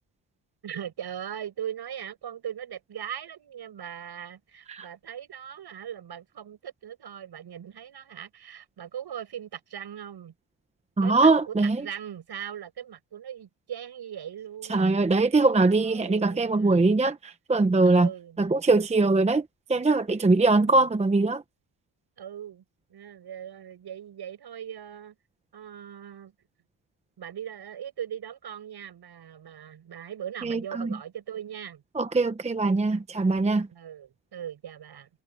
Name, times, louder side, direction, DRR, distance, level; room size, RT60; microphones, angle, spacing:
voice 1, 0.6-10.3 11.0-15.0 15.6-16.9 17.8-18.5 20.6-20.9 22.2-22.6 22.9-25.1 25.5-26.3 27.2-31.8 33.7-35.1, right 9 dB, 55° right, 7.8 m, -39 dB
voice 2, 11.0-11.8 14.7-18.1 18.4-21.4 30.4-30.9 32.0-33.7, right 3 dB, 15° right, 0.8 m, -22 dB
cardioid pair, 125°, 47 cm